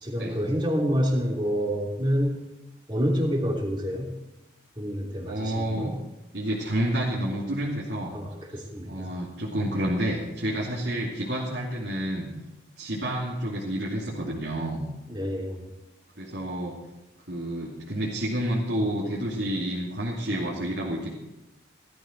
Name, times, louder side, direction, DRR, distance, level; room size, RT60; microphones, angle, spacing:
voice 1, 0.0-2.3 2.9-4.1 4.8-6.0 8.1-9.1 15.1-15.7, equal, 25° right, -1 dB, 3.1 m, -27 dB
voice 2, 5.3-6.0 6.3-8.2 8.8-12.3 12.8-14.8 16.2-16.8 17.3-21.2, right 1 dB, 65° right, -5 dB, 2.8 m, -29 dB
17.5 x 13.5 x 4.6 m, 0.98 s
head